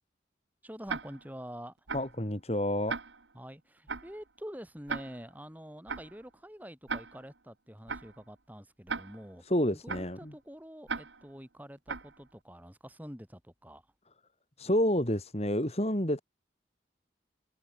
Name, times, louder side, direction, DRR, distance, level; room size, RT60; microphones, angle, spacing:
voice 1, 0.6-1.8 3.3-9.4 9.7-13.8, equal, 10° right, 5.0 m, -46 dB
Tick-tock, 0.9-1.4 1.9-2.2 2.9-3.4 3.9-4.2 4.9-5.4 5.9-6.2 6.9-7.4 7.9-8.2 8.9-9.4 9.9-10.2 10.9-11.4 11.9-12.2, right 4 dB, 75° right, 1.8 m, -38 dB
voice 2, 1.9-3.0 9.4-10.3 14.6-16.2, left 1 dB, 35° left, 3.7 m, -29 dB
head